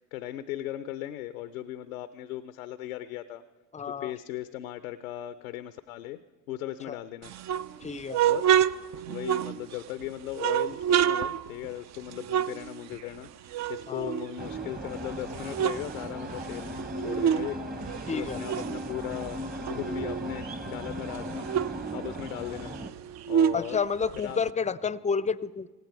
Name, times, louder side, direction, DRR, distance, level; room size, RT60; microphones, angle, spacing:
voice 1, 0.0-3.4 3.8-6.2 6.5-7.3 8.2-8.5 9.1-22.7 23.3-23.8 24.2-24.4, left 13 dB, 90° left, 13 dB, 0.5 m, -38 dB
voice 2, 3.7-4.1 6.9-7.0 7.8-8.2 13.9-14.1 18.1-18.4 23.5-25.7, left 5 dB, 20° left, 19 dB, 0.5 m, -30 dB
sound 1, 7.2-9.9 10.3-13.2 13.5-14.9 15.2-17.5 17.8-20.4 20.7-20.8 21.1-24.5, right 9 dB, 45° right, 0.4 m, -28 dB
sound 2, 14.4-22.9, equal, 20° right, 1.3 m, -37 dB
17.5 x 17.0 x 4.6 m, 1.2 s
hypercardioid pair, 55°, 40 cm